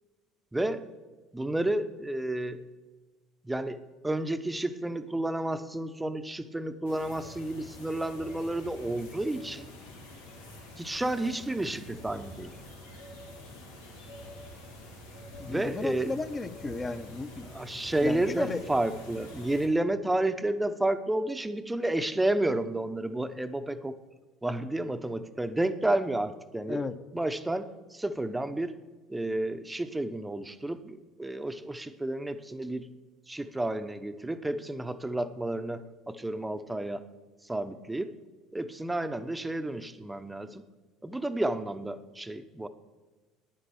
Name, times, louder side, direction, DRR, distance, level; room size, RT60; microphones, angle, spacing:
voice 1, 0.5-0.9 1.3-2.6 3.4-9.7 10.8-12.6 15.5-16.2 17.5-24.0 24.4-26.8 27.1-28.7 29.1-32.9 33.3-37.0 37.4-38.1 38.5-40.7 41.0-42.7, right 1 dB, 10° right, 10 dB, 0.8 m, -31 dB
sound 1, 6.8-19.7, left 1 dB, 85° left, 2.7 m, -47 dB
voice 2, 15.4-17.5 18.0-18.6 26.7-26.9, left 3 dB, 25° left, 10 dB, 0.9 m, -34 dB
10.5 x 10.0 x 6.9 m, 1.3 s
figure-of-eight pair, 65°, 0 cm